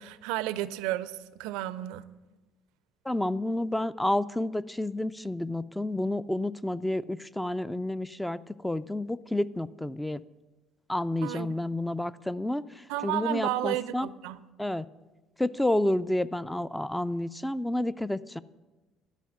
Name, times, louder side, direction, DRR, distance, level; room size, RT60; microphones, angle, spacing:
voice 1, 0.0-2.1 11.2-11.5 12.9-14.4, right 14 dB, 65° right, 16 dB, 0.4 m, -32 dB
voice 2, 3.1-10.2 10.9-14.1 14.6-14.9 15.4-18.4, left 1 dB, 5° left, 16 dB, 0.4 m, -30 dB
12.5 x 5.8 x 8.1 m, 1.2 s
figure-of-eight pair, 55°, 0 cm